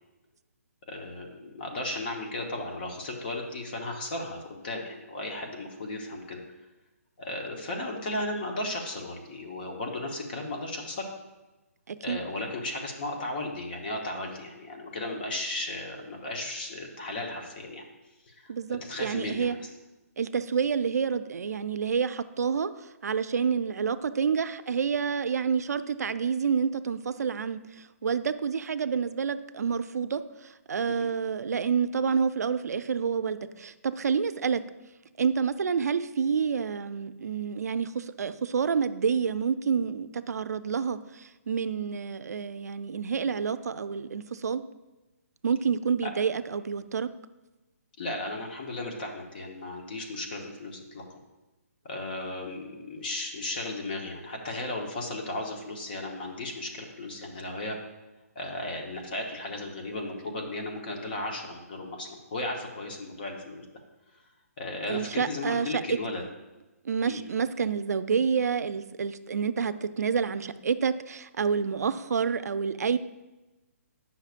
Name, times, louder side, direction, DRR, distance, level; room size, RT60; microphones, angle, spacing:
voice 1, 0.9-6.4 7.2-11.1 12.0-17.8 18.3-19.6 30.9-31.1 46.0-46.1 48.0-51.0 51.8-57.8 58.3-63.7 64.6-66.2 67.1-67.2, left 2 dB, 35° left, 2 dB, 1.0 m, -35 dB
voice 2, 11.9-12.2 18.5-19.6 20.2-34.6 35.2-44.6 45.4-47.1 64.9-65.8 66.8-73.0, right 6 dB, 80° right, 12 dB, 0.4 m, -28 dB
9.4 x 5.7 x 2.5 m, 1.1 s
hypercardioid pair, 170°, 9 cm